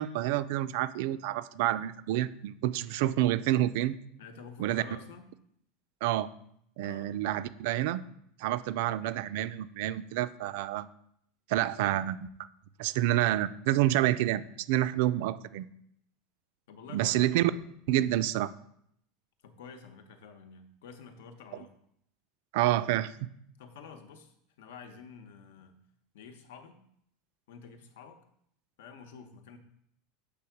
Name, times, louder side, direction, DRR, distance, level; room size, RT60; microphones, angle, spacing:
voice 1, 0.0-3.9 4.6-4.8 6.0-6.3 6.8-8.0 8.4-10.9 11.5-12.2 12.8-15.7 16.9-17.5 17.9-18.5 22.5-23.1, right 14 dB, 55° right, 14 dB, 0.4 m, -28 dB
voice 2, 4.2-5.3 6.8-7.1 16.7-17.3 19.4-21.7 23.6-25.8 26.1-26.8 27.5-28.2 28.8-29.6, left 6 dB, 80° left, 8 dB, 0.9 m, -49 dB
7.6 x 3.5 x 5.8 m, 0.71 s
supercardioid pair, 180°, 0 cm